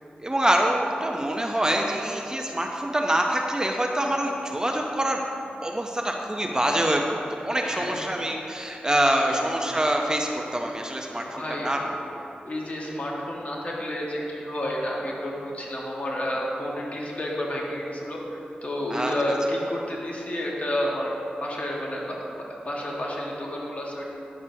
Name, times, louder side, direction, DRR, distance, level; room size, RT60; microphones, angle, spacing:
voice 1, 0.2-5.2 5.6-7.2 7.4-11.8 12.2-12.3 18.9-19.1, right 1 dB, 20° right, 1 dB, 0.7 m, -25 dB
voice 2, 7.6-8.0 9.1-9.4 11.1-11.8 12.4-21.1 21.4-24.1, left 1 dB, 40° left, -3 dB, 1.6 m, -30 dB
9.9 x 6.6 x 2.8 m, 2.9 s
cardioid pair, 45°, 3 cm